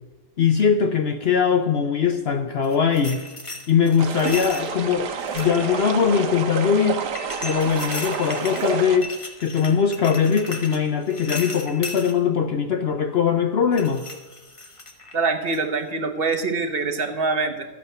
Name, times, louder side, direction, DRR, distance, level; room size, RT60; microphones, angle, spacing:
voice 1, 0.4-3.2 3.7-7.0 7.4-14.0, left 7 dB, 80° left, 8 dB, 0.5 m, -21 dB
sound 1, 2.6-4.7 5.2-5.9 7.1-12.1 13.7-15.2 15.5-15.8, left 2 dB, 20° left, 1.1 m, -36 dB
sound 2, 4.0-9.0, right 6 dB, 65° right, 1.6 m, -29 dB
voice 2, 15.1-17.7, right 4 dB, 35° right, 6 dB, 1.1 m, -24 dB
13.0 x 8.7 x 6.8 m, 1.2 s
omnidirectional pair, 2.0 m